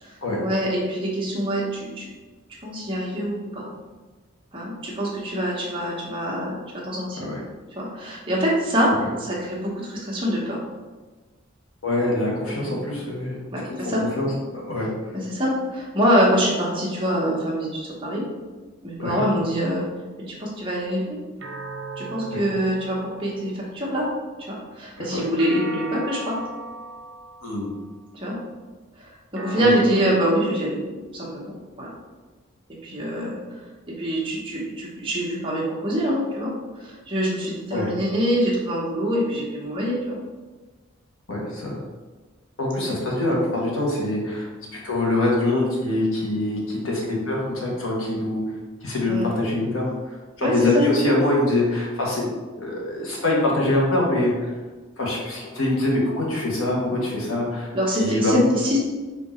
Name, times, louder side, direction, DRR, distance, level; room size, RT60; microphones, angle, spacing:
voice 1, 0.4-2.1 2.6-3.7 4.5-7.3 7.7-8.9 9.2-10.6 12.6-12.7 13.5-14.0 15.1-18.2 18.8-19.8 20.3-21.2 22.0-24.0 24.5-26.4 28.1-28.3 29.0-30.8 31.1-31.9 32.8-33.4 34.0-36.5 36.8-40.2 42.8-42.9 49.1-49.3 50.4-50.9 57.7-58.8, equal, 25° right, -5 dB, 1.1 m, -25 dB
voice 2, 11.8-13.4 13.7-14.9 19.0-19.2 22.3-22.4 25.0-25.2 27.4-27.7 29.6-29.7 37.7-37.9 41.3-41.8 42.6-44.5 44.8-48.4 48.8-52.2 52.6-54.5 55.0-57.7 58.0-58.5, left 1 dB, 85° left, -3 dB, 1.3 m, -24 dB
sound 1, 21.4-24.0 25.4-27.9 29.3-32.0, right 1 dB, 65° right, 0.9 m, -37 dB
4.3 x 2.8 x 4.3 m, 1.3 s
head